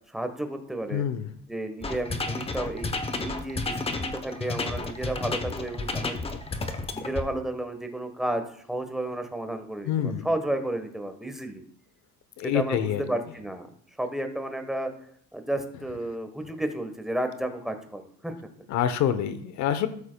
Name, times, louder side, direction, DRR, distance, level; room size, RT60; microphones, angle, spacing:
voice 1, 0.1-1.1 1.5-2.9 3.2-6.2 6.9-8.4 8.7-11.6 12.4-13.7 14.0-14.9 15.3-18.3, right 1 dB, ahead, 6 dB, 1.1 m, -32 dB
voice 2, 0.9-1.2 9.9-10.2 12.4-13.0 18.7-19.9, left 9 dB, 65° left, 12 dB, 0.8 m, -26 dB
sound 1, 1.8-7.2, left 3 dB, 20° left, 0.8 m, -31 dB
13.0 x 7.3 x 2.3 m, 0.63 s
cardioid pair, 110°, 31 cm